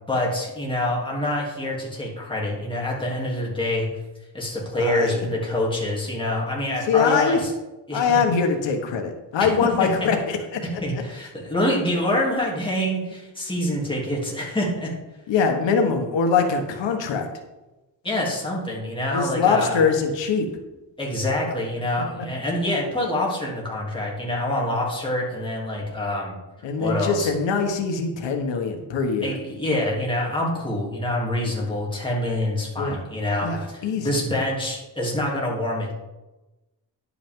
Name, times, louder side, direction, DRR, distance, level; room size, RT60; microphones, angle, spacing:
voice 1, 0.1-3.9 4.3-7.5 7.9-8.2 9.4-9.5 9.8-9.9 10.8-14.9 18.0-19.9 21.0-26.3 26.8-27.3 29.2-35.9, left 1 dB, 10° left, -4 dB, 2.8 m, -26 dB
voice 2, 4.8-5.2 6.9-7.4 7.9-10.6 10.9-11.0 15.3-17.3 19.1-20.5 26.6-29.3 32.8-33.0 33.4-34.1, left 5 dB, 85° left, 5 dB, 1.3 m, -23 dB
10.5 x 8.5 x 3.7 m, 1.1 s
cardioid pair, 130°, 43 cm